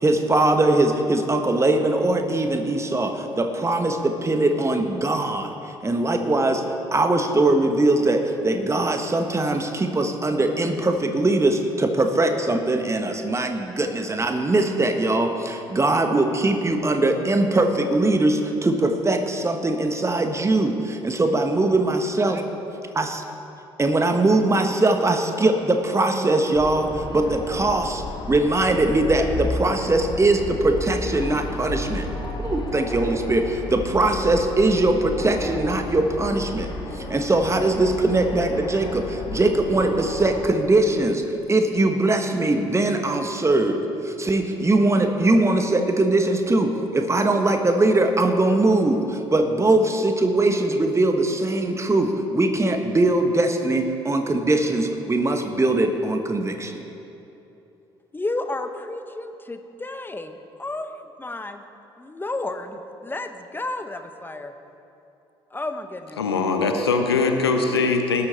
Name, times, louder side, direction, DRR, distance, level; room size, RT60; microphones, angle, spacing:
voice 1, 0.0-5.5 5.8-6.6 6.9-22.4 23.0-23.2 23.8-32.1 32.4-41.2 41.5-56.8, right 2 dB, 20° right, 6 dB, 1.5 m, -21 dB
sound 1, 26.5-40.5, left 2 dB, 35° left, 2.1 m, -32 dB
voice 2, 58.1-60.9 61.2-61.6 62.0-64.5 65.5-66.2, left 2 dB, 15° left, 8 dB, 1.2 m, -32 dB
voice 3, 66.2-68.3, left 4 dB, 80° left, 5 dB, 0.9 m, -21 dB
18.5 x 12.5 x 4.3 m, 2.8 s
figure-of-eight pair, 45°, 13 cm